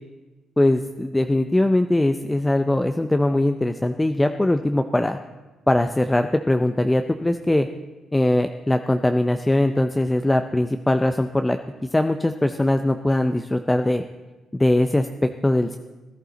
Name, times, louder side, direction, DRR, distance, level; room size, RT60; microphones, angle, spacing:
voice 1, 0.6-5.2 5.7-7.7 8.1-11.6 11.9-14.0 14.5-15.8, left 1 dB, 10° left, 8 dB, 0.5 m, -21 dB
16.0 x 11.0 x 4.0 m, 1.2 s
cardioid pair, 90°, 0 cm